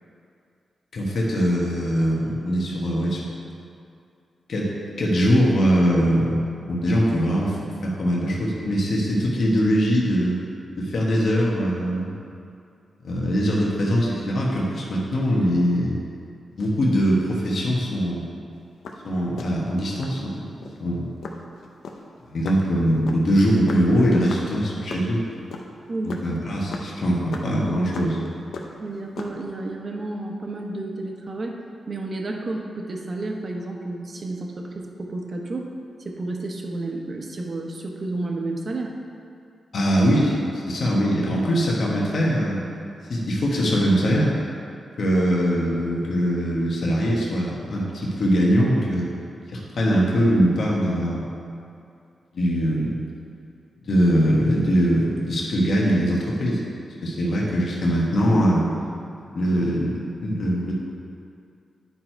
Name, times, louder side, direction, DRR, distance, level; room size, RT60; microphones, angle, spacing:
voice 1, 0.9-3.3 4.5-4.7 5.0-10.4 10.8-12.1 13.0-16.0 16.6-18.3 19.0-21.1 22.2-25.2 26.0-28.2 39.7-42.6 43.1-44.3 45.0-49.1 49.5-51.3 52.3-53.0 53.8-56.6 57.0-58.7 59.3-60.7, equal, 65° left, -4 dB, 1.4 m, -22 dB
sound 1, 18.6-20.2 20.6-20.8 21.2-25.1 25.3-28.3 28.5-29.5, left 4 dB, 85° left, 0.7 m, -37 dB
voice 2, 28.8-31.5 31.9-35.7 36.0-38.9, right 2 dB, 45° right, 1 dB, 1.0 m, -31 dB
9.7 x 4.6 x 4.5 m, 2.5 s
cardioid pair, 85°, 0 cm